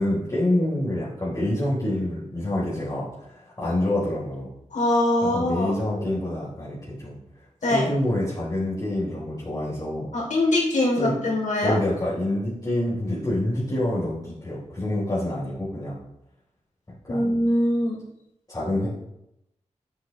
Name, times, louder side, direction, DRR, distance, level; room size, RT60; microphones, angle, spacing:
voice 1, 0.0-4.5 5.2-7.2 7.7-10.1 10.9-11.2 11.6-16.0 17.0-17.4 18.5-18.9, left 1 dB, 30° left, -9 dB, 3.8 m, -27 dB
voice 2, 4.7-5.7 7.6-7.8 10.1-11.7 17.1-17.9, left 1 dB, 75° left, -2 dB, 3.2 m, -22 dB
12.5 x 8.2 x 3.2 m, 0.82 s
wide cardioid pair, 110°, 13 cm